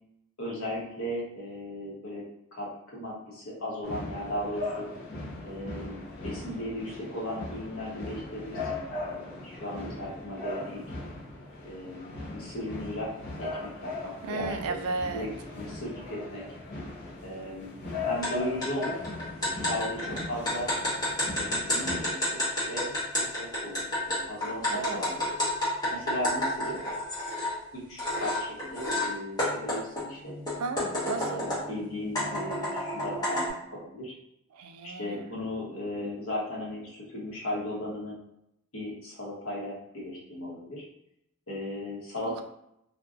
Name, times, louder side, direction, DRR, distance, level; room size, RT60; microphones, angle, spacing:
voice 1, 0.4-2.2 2.5-4.9 5.4-10.8 11.6-13.1 13.4-14.7 15.1-16.4 17.2-17.7 18.1-19.0 19.4-20.7 21.3-22.4 22.7-22.9 23.4-23.8 24.1-25.3 25.9-26.8 27.7-30.4 31.0-34.1 34.8-38.1 38.7-40.8 41.5-42.4, left 1 dB, 70° left, -4 dB, 1.0 m, -36 dB
sound 1, 3.8-22.0, left 2 dB, 50° left, 0.5 m, -39 dB
voice 2, 14.2-15.3 24.7-25.0 30.6-31.5 34.5-35.2 42.3-42.4, right 4 dB, 85° right, 7 dB, 0.3 m, -34 dB
sound 2, 18.2-18.3 18.6-27.5 28.0-29.1 29.4-31.7 32.2-33.5, left 1 dB, 20° left, 0.9 m, -30 dB
2.6 x 2.2 x 2.4 m, 0.76 s
head